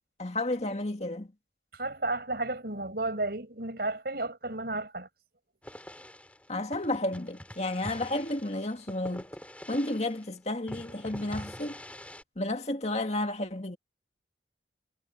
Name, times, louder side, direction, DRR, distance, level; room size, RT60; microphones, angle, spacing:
voice 1, 0.2-1.3 6.5-9.3 9.7-11.8 12.4-13.8, left 1 dB, 40° left, 2.1 m, -32 dB
voice 2, 1.7-5.1, right 2 dB, 60° right, 6.3 m, -33 dB
sound 1, 5.6-10.3 10.7-12.2, equal, 10° left, 5.7 m, -45 dB
head